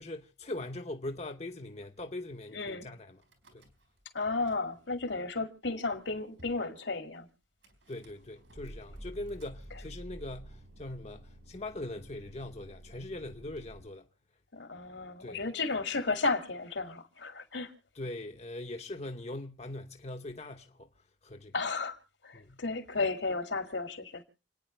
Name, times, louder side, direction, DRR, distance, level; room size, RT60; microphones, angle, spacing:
voice 1, 0.0-3.2 3.5-3.7 7.9-14.1 15.2-15.4 17.9-21.5 22.3-22.6, left 2 dB, 35° left, 0.9 m, -41 dB
voice 2, 2.5-2.9 4.1-7.3 14.5-17.7 21.5-22.0 22.2-24.2, left 3 dB, 80° left, 2.3 m, -33 dB
Car / Engine starting / Idling, 3.2-4.0 4.3-5.0 5.7-5.8 6.0-6.1 6.4-6.7 7.6-13.8, right 1 dB, 80° right, 4.7 m, -50 dB
29.0 x 9.8 x 3.3 m
head